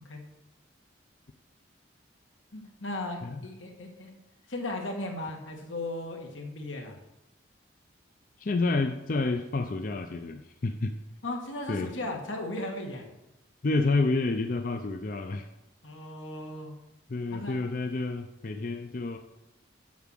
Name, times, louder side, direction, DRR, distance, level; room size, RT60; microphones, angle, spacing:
voice 1, 2.5-4.1 4.5-7.0 11.2-13.1 15.8-16.8 17.3-17.6, left 2 dB, 85° left, 3 dB, 1.9 m, -36 dB
voice 2, 8.4-10.9 11.7-11.9 13.6-15.5 17.1-19.2, left 3 dB, 45° left, 6 dB, 0.5 m, -29 dB
7.2 x 6.2 x 7.5 m, 0.91 s
head